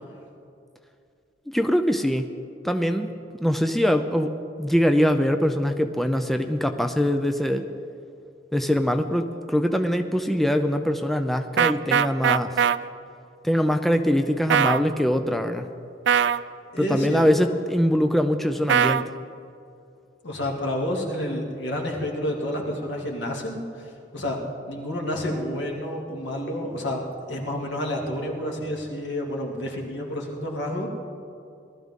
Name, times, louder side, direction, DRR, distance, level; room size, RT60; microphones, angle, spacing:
voice 1, 1.5-2.3 2.6-3.1 3.4-7.7 8.5-12.6 13.4-15.7 16.8-19.1, equal, ahead, 6 dB, 0.4 m, -23 dB
sound 1, 11.6-12.8 14.5-14.8 16.1-16.4 18.7-19.0, right 8 dB, 70° right, 0.3 m, -20 dB
voice 2, 12.2-12.6 16.7-17.3 20.2-24.4 24.7-30.9, left 1 dB, 80° left, -1 dB, 2.4 m, -30 dB
19.5 x 13.0 x 3.7 m, 2.5 s
head